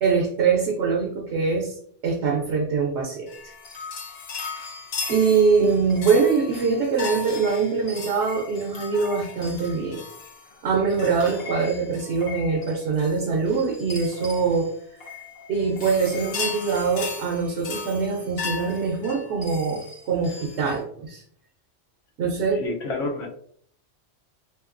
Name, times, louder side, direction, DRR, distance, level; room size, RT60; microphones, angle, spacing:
voice 1, 0.0-1.7 2.0-3.5 5.1-10.0 10.6-14.7 15.5-21.2 22.2-22.6, right 5 dB, 70° right, -1 dB, 0.9 m, -23 dB
sound 1, 3.3-20.8, left 5 dB, 60° left, 0.8 m, -37 dB
voice 2, 22.6-23.3, left 3 dB, 80° left, 0 dB, 1.1 m, -28 dB
3.4 x 2.8 x 2.5 m, 0.63 s
omnidirectional pair, 1.3 m